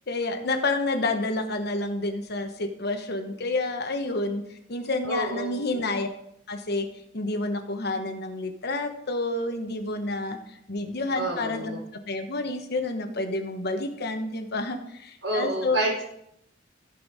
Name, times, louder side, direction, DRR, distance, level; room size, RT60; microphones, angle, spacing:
voice 1, 0.0-6.1 6.5-6.9 7.1-10.4 10.7-15.8, left 2 dB, 55° left, 6 dB, 1.2 m, -29 dB
voice 2, 5.0-5.8 11.2-11.8 15.2-16.0, right 1 dB, 75° right, -1 dB, 4.4 m, -29 dB
15.0 x 5.5 x 4.2 m, 0.75 s
head